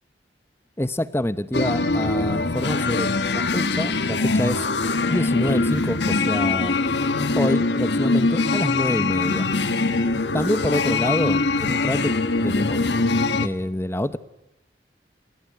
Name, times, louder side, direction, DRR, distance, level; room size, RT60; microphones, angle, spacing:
voice 1, 0.8-4.7 5.1-6.8 7.3-9.5 10.3-12.9 13.4-14.2, left 1 dB, 15° left, 14 dB, 1.0 m, -26 dB
sound 1, 1.5-13.5, left 3 dB, 70° left, 1.5 m, -22 dB
28.0 x 20.5 x 9.5 m, 0.87 s
head